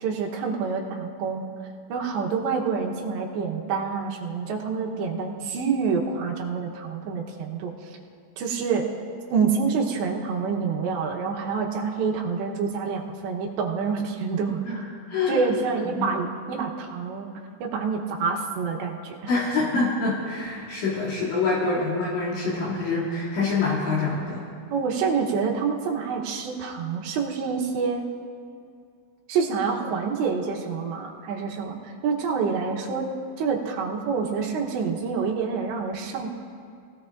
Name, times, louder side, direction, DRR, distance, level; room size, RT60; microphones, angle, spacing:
voice 1, 0.0-1.5 1.9-7.7 8.4-8.9 9.3-14.6 15.3-17.3 17.6-19.1 24.7-28.0 29.3-33.1 33.4-36.3, right 5 dB, 75° right, 0 dB, 3.1 m, -27 dB
voice 2, 15.1-15.4 15.8-16.1 19.3-24.4, left 3 dB, 70° left, -10 dB, 4.9 m, -26 dB
23.5 x 17.0 x 2.5 m, 2.3 s
omnidirectional pair, 5.4 m